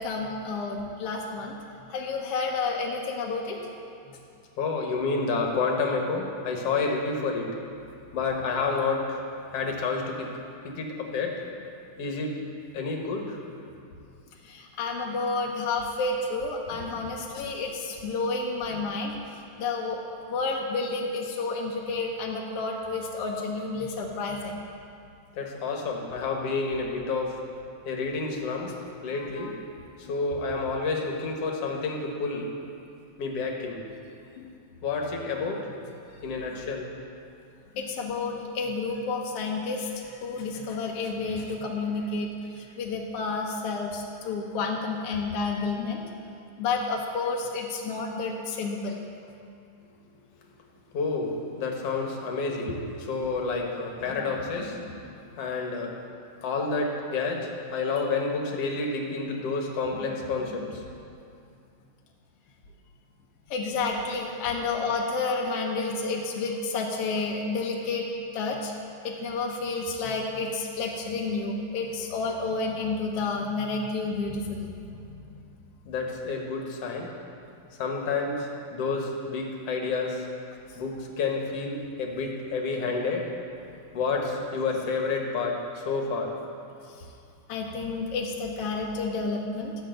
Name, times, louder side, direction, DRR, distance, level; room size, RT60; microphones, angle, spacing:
voice 1, 0.0-1.5 1.9-3.6 14.5-19.2 19.6-20.0 20.3-24.6 29.4-29.5 30.0-30.1 34.4-34.6 37.7-42.3 42.8-46.0 46.6-49.0 63.5-68.1 68.3-68.7 69.0-74.7 75.0-75.1 87.5-89.8, left 3 dB, 80° left, 0 dB, 1.3 m, -30 dB
voice 2, 4.6-7.6 8.1-9.2 9.5-10.3 10.6-11.4 12.0-12.4 12.7-13.4 16.7-17.0 19.1-19.2 25.4-27.4 27.9-28.7 29.0-29.6 30.0-32.5 33.2-33.8 34.8-35.7 36.2-36.9 50.9-54.9 55.4-56.0 56.4-60.8 75.9-77.1 77.8-80.2 80.8-83.3 83.9-86.3, left 4 dB, 55° left, 1 dB, 1.8 m, -29 dB
13.0 x 6.6 x 7.8 m, 2.5 s
omnidirectional pair, 4.0 m